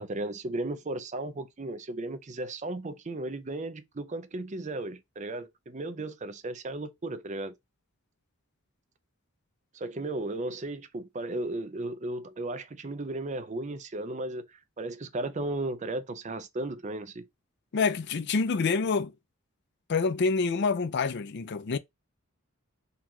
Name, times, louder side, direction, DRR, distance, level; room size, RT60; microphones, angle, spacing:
voice 1, 0.0-7.5 9.7-17.2, right 2 dB, 35° right, 0.5 m, -35 dB
voice 2, 17.7-19.1 19.9-21.8, left 4 dB, 50° left, 0.5 m, -27 dB
4.0 x 2.4 x 4.3 m
head